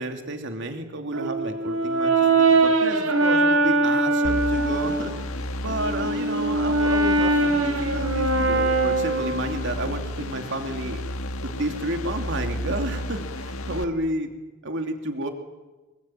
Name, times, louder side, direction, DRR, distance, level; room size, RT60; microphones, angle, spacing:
voice 1, 0.0-5.1 5.6-11.0 11.4-14.3 14.6-15.3, right 1 dB, 60° right, 5 dB, 3.0 m, -31 dB
Brass instrument, 1.1-5.1 5.7-9.7, right 2 dB, 85° right, 4.5 m, -22 dB
sound 1, 4.2-13.8, left 1 dB, 85° left, 1.7 m, -32 dB
25.5 x 23.5 x 9.3 m, 1.2 s
head